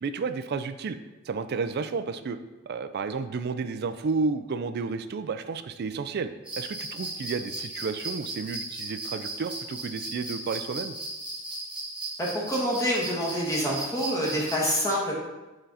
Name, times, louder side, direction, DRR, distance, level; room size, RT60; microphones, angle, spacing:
voice 1, 0.0-1.0 1.3-2.4 2.7-6.3 6.6-11.0, right 4 dB, 50° right, 11 dB, 0.4 m, -31 dB
sound 1, 6.4-14.5, right 1 dB, 5° right, 1.2 m, -36 dB
voice 2, 12.2-15.1, equal, 15° left, -4 dB, 1.4 m, -27 dB
6.1 x 3.9 x 4.1 m, 1.1 s
head